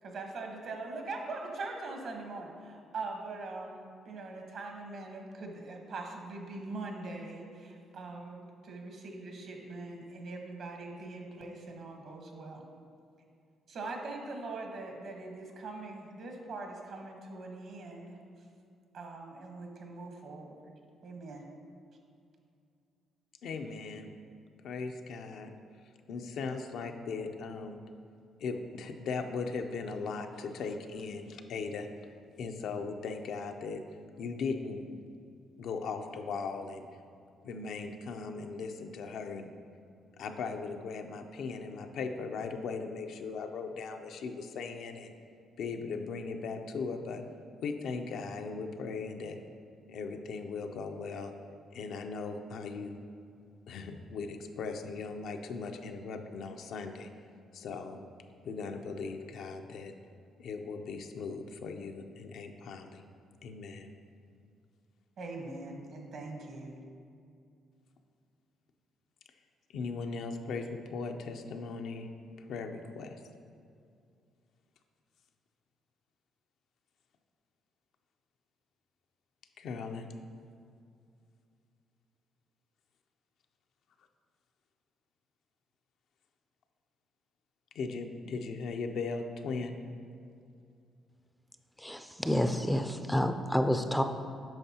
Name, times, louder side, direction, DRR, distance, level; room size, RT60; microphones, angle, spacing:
voice 1, 0.0-12.7 13.7-18.2 18.9-20.7 21.0-21.4 65.2-66.8, right 3 dB, 65° right, 2 dB, 1.1 m, -42 dB
voice 2, 23.4-24.1 24.6-25.5 26.1-27.8 28.4-31.9 32.4-33.8 34.2-34.9 35.6-36.9 37.4-39.5 40.2-45.1 45.6-47.2 47.6-49.4 49.9-51.3 51.7-53.0 53.7-57.1 57.5-58.0 58.4-59.9 60.4-63.0 63.4-63.9 69.7-72.1 72.5-73.2 79.6-80.1 87.7-89.8, left 4 dB, 75° left, 5 dB, 0.5 m, -38 dB
voice 3, 91.8-94.0, equal, 5° left, 7 dB, 0.4 m, -29 dB
8.9 x 5.6 x 2.8 m, 2.4 s
cardioid pair, 90°, 0 cm